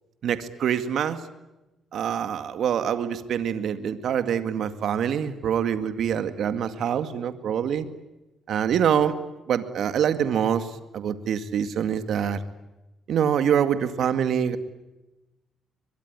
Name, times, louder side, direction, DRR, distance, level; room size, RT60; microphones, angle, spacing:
voice 1, 0.2-1.2 1.9-7.9 8.5-9.2 9.5-12.4 13.1-14.6, right 8 dB, 70° right, 11 dB, 2.1 m, -25 dB
23.0 x 23.0 x 9.8 m, 1.0 s
cardioid pair, 90°, 0 cm